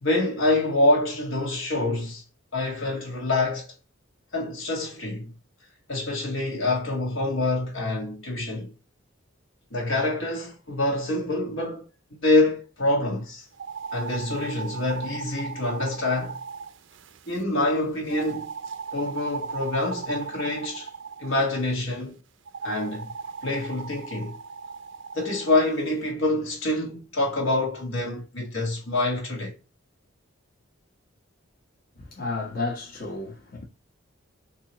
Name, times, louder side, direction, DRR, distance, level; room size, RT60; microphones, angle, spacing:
voice 1, 0.0-2.2 2.5-3.7 4.3-5.3 5.9-8.7 9.7-11.9 12.2-13.5 13.9-16.4 17.3-18.5 18.9-20.9 21.2-22.2 22.6-23.1 23.4-24.4 25.1-29.5, left 2 dB, 75° left, 1.5 m, -26 dB
sound 1, 13.5-17.4 18.1-21.4 22.5-25.7, right 5 dB, 65° right, 0.4 m, -37 dB
voice 2, 32.0-33.6, left 3 dB, 45° left, 1.1 m, -32 dB
4.0 x 2.8 x 2.9 m
head